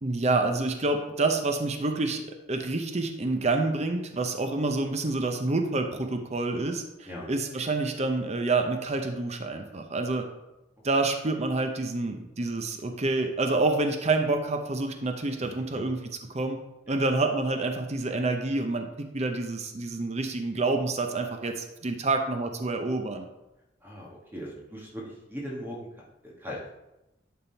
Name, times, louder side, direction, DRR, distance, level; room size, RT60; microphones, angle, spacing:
voice 1, 0.0-2.2 2.5-10.3 10.8-16.0 16.3-16.6 16.9-23.2, right 2 dB, 40° right, 5 dB, 0.7 m, -28 dB
voice 2, 23.8-25.0 25.3-25.8 26.2-26.6, equal, 10° right, -3 dB, 1.3 m, -39 dB
11.0 x 3.7 x 4.4 m, 0.95 s
head